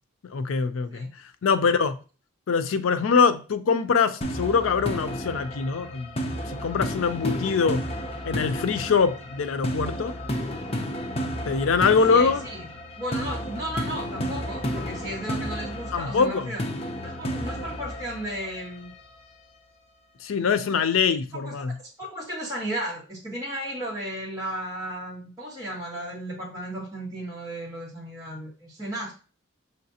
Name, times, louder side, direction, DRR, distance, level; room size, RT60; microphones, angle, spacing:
voice 1, 0.2-1.1 1.4-2.0 2.5-6.1 6.5-7.8 8.2-10.1 11.5-12.4 15.9-16.5 20.2-21.8, left 5 dB, 80° left, 0.4 m, -23 dB
sound 1, 4.2-19.2, equal, 30° left, 0.6 m, -32 dB
voice 2, 12.1-12.7 13.0-16.6 17.0-18.9 20.7-20.8 21.4-21.5 22.0-29.1, right 1 dB, 15° right, 1.4 m, -34 dB
5.7 x 3.2 x 2.8 m
head